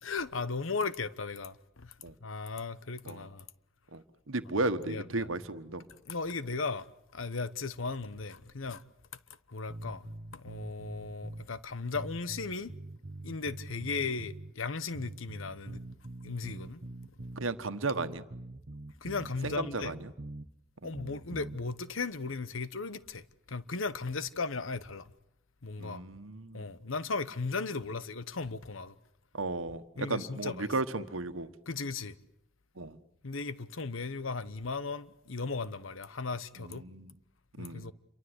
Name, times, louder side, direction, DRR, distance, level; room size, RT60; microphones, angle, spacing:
voice 1, 0.0-1.9 2.2-3.5 4.6-5.3 6.1-6.9 7.1-8.8 9.5-10.1 10.3-12.7 13.2-15.8 16.2-16.8 19.0-20.0 20.8-25.1 25.6-26.0 26.5-29.0 30.0-30.7 31.7-32.2 33.2-36.8 37.6-37.9, left 4 dB, 85° left, 1.1 m, -36 dB
voice 2, 3.9-5.9 17.4-18.2 19.4-20.1 20.8-20.9 25.8-26.6 29.3-31.5 32.8-33.0 36.6-37.1 37.6-37.9, right 3 dB, 85° right, 1.4 m, -35 dB
sound 1, 9.7-11.5 11.9-14.5 14.9-17.5 17.9-20.5 20.9-21.6, right 1 dB, 45° right, 0.9 m, -44 dB
28.0 x 23.5 x 8.1 m
head